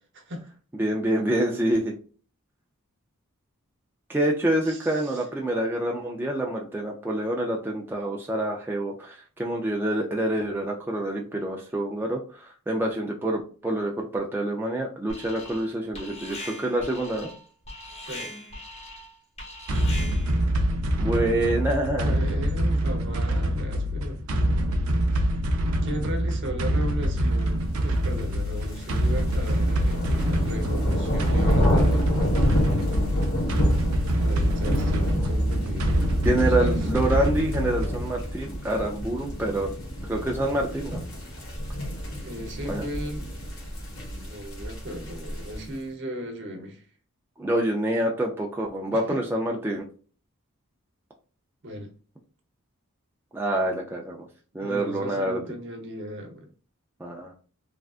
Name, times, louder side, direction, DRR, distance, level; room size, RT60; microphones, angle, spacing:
voice 1, 0.1-0.5 4.6-5.2 18.0-18.3 22.0-24.2 25.8-32.1 34.2-36.0 36.4-36.9 42.2-43.3 43.9-46.8 48.9-49.2 51.6-51.9 54.6-56.5, equal, 55° right, 0.8 m, -36 dB
voice 2, 0.8-1.9 4.1-17.3 21.0-22.1 36.2-39.8 40.0-41.0 42.7-42.9 47.4-49.9 53.3-54.3 54.5-55.4 57.0-57.3, right 1 dB, 10° right, 0.3 m, -27 dB
Alarm, 15.1-15.7 15.9-20.4, left 1 dB, 30° left, 1.0 m, -40 dB
sound 1, 19.7-38.1, equal, 80° right, 0.5 m, -25 dB
sound 2, 28.2-45.7, equal, 80° left, 1.5 m, -29 dB
3.3 x 2.4 x 2.4 m
head